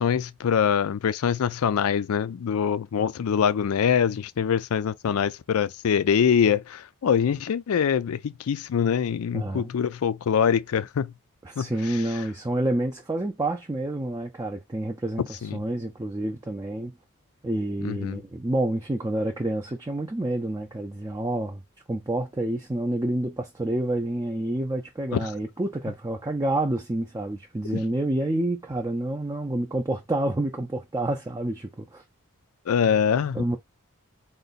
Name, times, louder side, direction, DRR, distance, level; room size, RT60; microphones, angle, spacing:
voice 1, 0.0-11.1 11.6-11.7 15.4-15.6 17.8-18.2 25.1-25.2 27.7-27.8 32.7-33.4, left 7 dB, 75° left, 0.4 m, -24 dB
voice 2, 9.3-9.7 11.4-16.9 17.4-21.6 21.9-32.0 33.3-33.6, right 1 dB, 15° right, 0.4 m, -28 dB
3.9 x 2.2 x 4.0 m
head